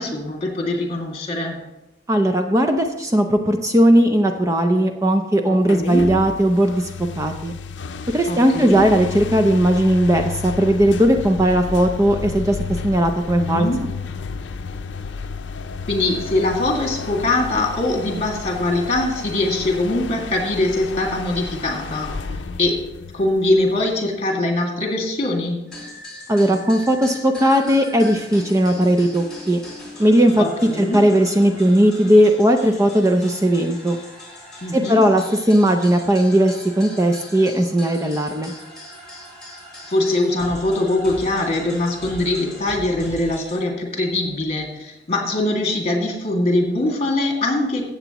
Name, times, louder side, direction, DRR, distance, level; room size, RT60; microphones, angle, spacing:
voice 1, 0.0-1.6 4.7-4.8 5.5-6.1 8.3-8.9 13.3-13.8 15.9-22.1 22.6-22.8 23.1-25.6 30.4-31.0 34.6-35.0 39.9-47.8, left 2 dB, 35° left, 1 dB, 2.2 m, -22 dB
voice 2, 2.1-6.9 7.2-7.5 8.1-12.6 12.8-13.7 26.3-29.6 30.0-30.4 30.8-34.0 34.7-38.5, equal, 20° right, 5 dB, 0.5 m, -17 dB
sound 1, 5.6-24.1, left 4 dB, 80° left, 0.5 m, -32 dB
sound 2, 25.7-43.6, left 1 dB, 5° left, 4.0 m, -40 dB
15.0 x 8.1 x 3.0 m, 0.93 s
head